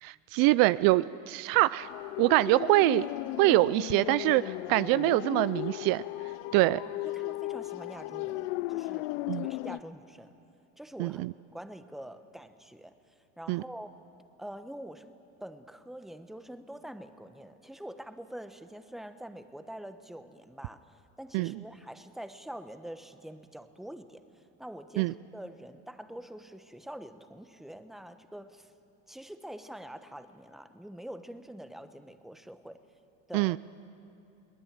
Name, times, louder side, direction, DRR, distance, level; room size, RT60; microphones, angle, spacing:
voice 1, 0.0-1.9 2.2-3.1 3.4-6.0 6.5-6.8 9.3-9.4 11.0-11.3 13.5-13.6 21.3-21.5 25.0-25.1 33.3-33.6, right 19 dB, 60° right, 17 dB, 0.5 m, -24 dB
sound 1, 1.8-9.8, left 20 dB, 75° left, 0.5 m, -36 dB
voice 2, 6.7-10.3 10.8-11.2 11.5-13.0 13.4-14.0 14.4-15.1 15.4-28.7 29.1-32.8 33.3-33.6, right 1 dB, ahead, 10 dB, 1.0 m, -45 dB
22.5 x 19.0 x 8.9 m, 2.7 s
supercardioid pair, 100°, 39 cm